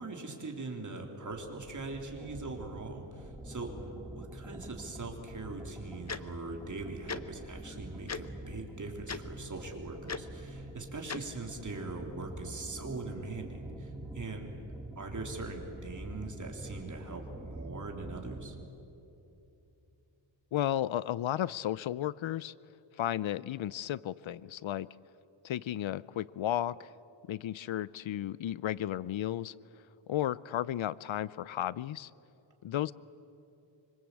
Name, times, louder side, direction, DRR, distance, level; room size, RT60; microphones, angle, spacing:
voice 1, 0.0-14.5 15.0-18.6, right 3 dB, 40° right, 2 dB, 3.6 m, -41 dB
sound 1, 1.6-18.7, right 1 dB, 5° right, 1.8 m, -46 dB
Tick-tock, 6.1-6.2 7.1-7.2 8.1-8.2 9.1-9.2 10.1-10.2 11.1-11.2, left 5 dB, 35° left, 0.9 m, -36 dB
voice 2, 20.5-22.5 23.0-24.9 25.4-26.9 27.3-29.5 30.1-32.1 32.6-32.9, left 12 dB, 75° left, 20 dB, 0.6 m, -33 dB
25.5 x 25.5 x 8.6 m, 3.0 s
wide cardioid pair, 140°, 48 cm